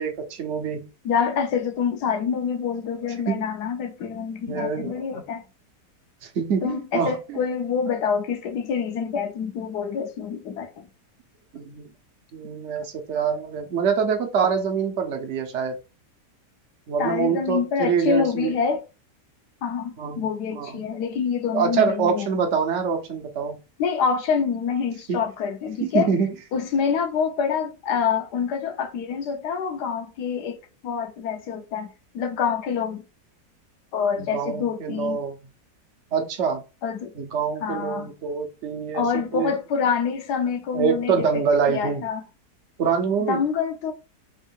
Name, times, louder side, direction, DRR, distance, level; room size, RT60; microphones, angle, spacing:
voice 1, 0.0-0.9 3.3-3.5 4.5-5.2 6.4-7.4 11.5-11.9 12.3-15.8 16.9-18.6 20.0-20.3 20.5-20.8 21.5-23.6 25.1-25.2 25.8-26.3 34.2-35.4 36.1-36.6 37.1-39.5 40.7-42.1 42.8-43.4, right 6 dB, 55° right, 0.9 m, -25 dB
voice 2, 1.0-5.4 6.6-10.9 17.0-18.8 19.6-22.3 23.8-26.1 26.5-30.6 30.8-33.0 33.9-35.2 36.8-37.1 37.6-38.1 38.9-41.4 41.7-42.2 43.2-43.9, left 6 dB, 75° left, 1.3 m, -26 dB
3.6 x 2.5 x 3.5 m
omnidirectional pair, 1.8 m